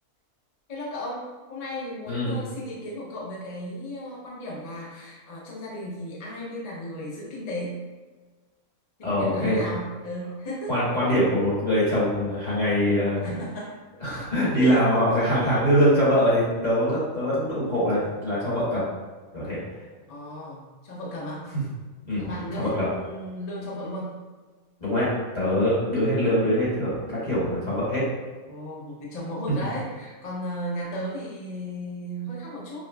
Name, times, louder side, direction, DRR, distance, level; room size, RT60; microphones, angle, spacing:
voice 1, 0.7-7.8 9.0-10.7 13.2-13.7 14.1-14.3 14.5-14.8 20.1-21.5 22.1-24.2 28.5-32.8, equal, 50° left, -5 dB, 0.4 m, -35 dB
voice 2, 2.1-2.4 9.0-9.6 10.7-13.3 14.0-18.8 19.3-19.6 22.1-22.2 22.6-22.9 24.8-28.0, equal, 30° left, -9 dB, 1.1 m, -23 dB
5.0 x 2.0 x 2.2 m, 1.3 s
omnidirectional pair, 1.6 m